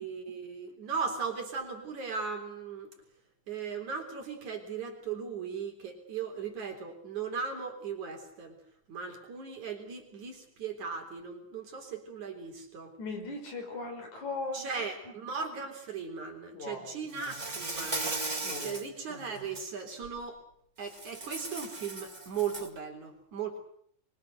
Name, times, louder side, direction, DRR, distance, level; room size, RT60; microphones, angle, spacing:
voice 1, 0.0-2.9 3.5-8.6 8.9-12.9 14.5-18.3 18.6-20.4 20.8-23.6, right 6 dB, 55° right, 3 dB, 5.0 m, -37 dB
voice 2, 13.0-14.7 15.0-15.1 16.5-17.0 18.4-19.0, left 3 dB, 50° left, 4 dB, 6.5 m, -38 dB
Insect, 17.1-18.9 19.4-19.6 20.9-22.8, right 3 dB, 30° right, 0.7 m, -37 dB
25.5 x 23.5 x 6.7 m, 0.62 s
omnidirectional pair, 4.2 m